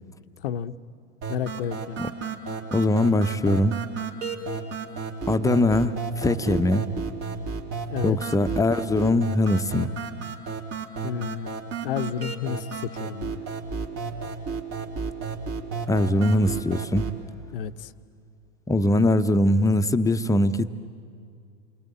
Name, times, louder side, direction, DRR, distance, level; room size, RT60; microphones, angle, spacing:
voice 1, 0.4-0.8 1.3-2.0 7.9-8.2 11.0-11.5 11.8-13.4 17.5-17.9, left 9 dB, 65° left, 13 dB, 0.8 m, -31 dB
sound 1, 1.2-17.2, right 5 dB, 50° right, 3.0 m, -33 dB
voice 2, 2.7-3.8 5.3-6.8 8.0-9.9 15.9-17.0 18.7-20.7, left 1 dB, 10° left, 11 dB, 0.8 m, -21 dB
28.5 x 23.0 x 8.8 m, 2.3 s
figure-of-eight pair, 85°, 30 cm